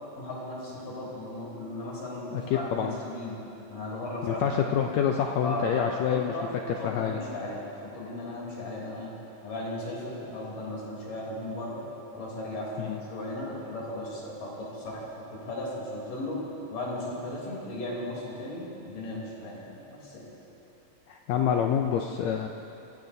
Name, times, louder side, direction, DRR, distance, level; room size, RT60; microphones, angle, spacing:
voice 1, 0.2-3.4 3.7-4.9 5.4-6.5 6.8-7.7 7.9-9.1 9.4-11.8 12.1-15.0 15.4-16.4 16.7-20.3, left 1 dB, 70° left, -5 dB, 4.9 m, -36 dB
voice 2, 2.3-2.9 4.2-6.3 6.7-7.2 12.8-13.0 21.1-22.5, left 8 dB, 85° left, 3 dB, 1.5 m, -27 dB
24.5 x 15.5 x 2.7 m, 2.9 s
omnidirectional pair, 3.8 m